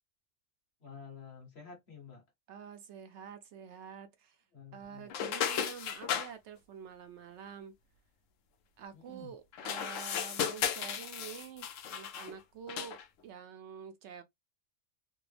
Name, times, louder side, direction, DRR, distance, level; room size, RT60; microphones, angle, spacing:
voice 1, 0.8-2.2 4.5-5.1 8.9-9.3, left 5 dB, 55° left, 1.5 m, -50 dB
voice 2, 2.5-4.4 4.7-7.8 8.8-14.2, right 8 dB, 70° right, 0.8 m, -48 dB
sound 1, 5.1-6.3 9.5-12.3 12.7-13.0, left 8 dB, 85° left, 1.0 m, -35 dB
3.3 x 2.0 x 3.2 m
omnidirectional pair, 1.3 m